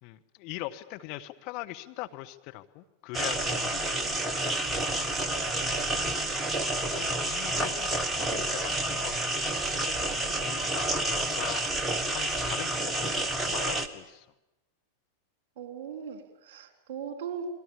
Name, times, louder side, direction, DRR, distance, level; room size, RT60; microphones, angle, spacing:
voice 1, 0.0-4.7 4.9-5.3 6.1-6.5 6.9-11.6 12.1-14.3, left 17 dB, 45° left, 7 dB, 1.3 m, -42 dB
sound 1, 3.1-13.9, right 1 dB, 10° right, 1.7 m, -29 dB
voice 2, 4.0-4.3 4.6-4.8 15.6-17.5, right 7 dB, 50° right, 6 dB, 3.8 m, -39 dB
29.5 x 22.5 x 7.4 m, 0.96 s
figure-of-eight pair, 90°, 0 cm